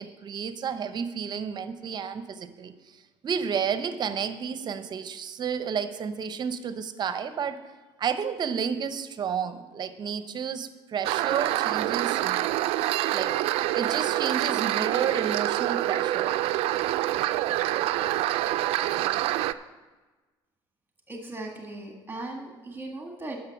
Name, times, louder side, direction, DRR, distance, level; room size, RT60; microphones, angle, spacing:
voice 1, 0.0-7.6 8.0-12.5 13.1-13.3 13.7-16.3, right 7 dB, 45° right, 11 dB, 0.7 m, -31 dB
sound 1, 11.0-19.5, right 14 dB, 75° right, 0.3 m, -26 dB
voice 2, 21.1-23.4, right 2 dB, 20° right, 1 dB, 1.7 m, -38 dB
11.0 x 6.5 x 5.9 m, 1.3 s
cardioid pair, 90°, 10 cm